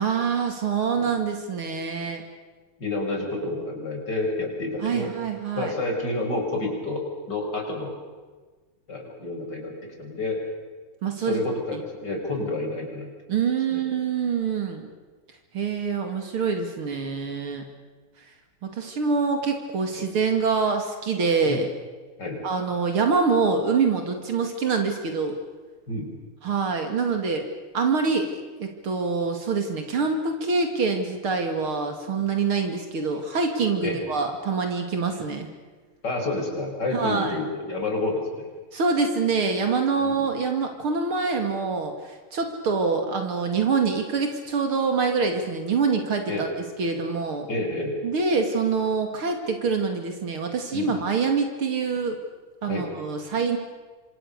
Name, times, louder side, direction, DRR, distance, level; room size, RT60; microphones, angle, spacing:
voice 1, 0.0-2.2 3.4-3.7 4.8-5.7 11.0-11.4 13.3-14.9 15.5-17.6 18.6-21.7 22.4-25.4 26.4-27.4 27.7-35.5 36.9-37.4 38.7-46.5 46.8-47.5 48.0-52.2 52.6-53.6, right 5 dB, 75° right, 5 dB, 3.2 m, -25 dB
voice 2, 2.8-5.1 5.5-7.9 8.9-10.4 11.2-11.8 12.0-13.1 13.7-13.8 19.9-20.1 21.4-21.7 22.2-22.4 25.9-26.1 33.8-34.0 36.0-38.5 40.0-40.2 46.3-46.5 47.5-48.0 50.7-50.9 52.7-52.9, left 2 dB, 50° left, 2 dB, 6.0 m, -29 dB
28.0 x 24.5 x 6.7 m, 1.4 s
omnidirectional pair, 2.4 m